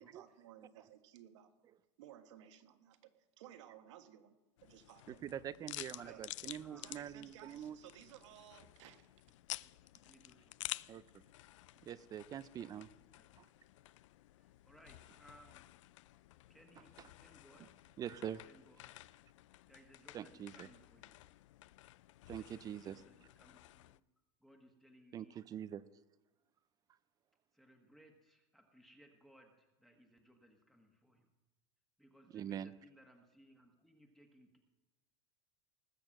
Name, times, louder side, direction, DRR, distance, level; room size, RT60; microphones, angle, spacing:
voice 1, 0.0-1.5 2.0-3.1 3.4-4.4 4.6-5.2 6.1-6.2 6.7-9.1, right 11 dB, 75° right, 8 dB, 1.6 m, -57 dB
sound 1, 4.6-24.0, left 17 dB, 90° left, 0.4 m, -52 dB
voice 2, 5.1-7.8 10.9-11.2 11.8-12.9 13.4-13.5 18.0-18.5 20.1-20.7 22.3-23.0 25.1-25.8 32.3-32.7, right 10 dB, 25° right, 17 dB, 0.4 m, -44 dB
voice 3, 5.8-6.2 6.6-7.0 9.6-10.6 12.6-13.3 14.4-15.7 16.5-17.7 18.4-18.9 19.6-21.2 22.3-24.0 24.4-25.4 27.5-31.3 32.0-34.6, equal, ahead, 3 dB, 1.4 m, -64 dB
19.5 x 7.1 x 7.7 m, 1.1 s
supercardioid pair, 145°, 15 cm